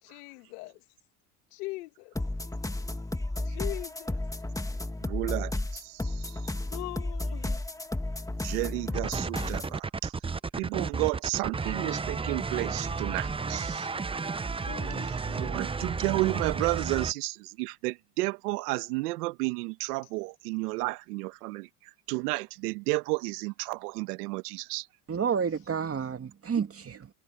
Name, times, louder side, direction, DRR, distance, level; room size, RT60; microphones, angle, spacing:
voice 1, 0.0-0.8 1.5-2.1 3.4-4.2 6.7-7.6 14.5-15.6, left 21 dB, 80° left, 2.6 m, -41 dB
sound 1, 2.1-9.8, left 2 dB, 5° left, 1.8 m, -33 dB
voice 2, 5.0-6.4 8.4-10.1 10.6-13.9 15.3-21.7 22.1-24.9, right 23 dB, 85° right, 1.3 m, -32 dB
sound 2, 8.9-17.1, right 4 dB, 10° right, 0.6 m, -32 dB
voice 3, 25.1-27.1, right 7 dB, 30° right, 2.5 m, -30 dB
supercardioid pair, 85°, 45 cm